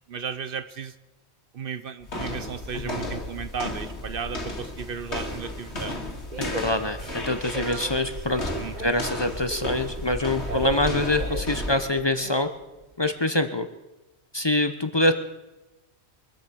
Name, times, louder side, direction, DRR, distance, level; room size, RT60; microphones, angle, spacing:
voice 1, 0.1-1.0 1.5-6.1 7.0-7.2 8.6-8.9, right 6 dB, 60° right, 13 dB, 0.8 m, -35 dB
sound 1, 2.0-12.0, left 1 dB, 85° left, 2.5 m, -34 dB
sound 2, 5.4-13.1, right 4 dB, 40° right, 1.4 m, -38 dB
voice 2, 6.4-8.4 8.8-12.5 13.0-13.7 14.3-15.1, left 2 dB, 25° left, 8 dB, 0.8 m, -25 dB
23.5 x 8.4 x 6.9 m, 1.1 s
omnidirectional pair, 1.1 m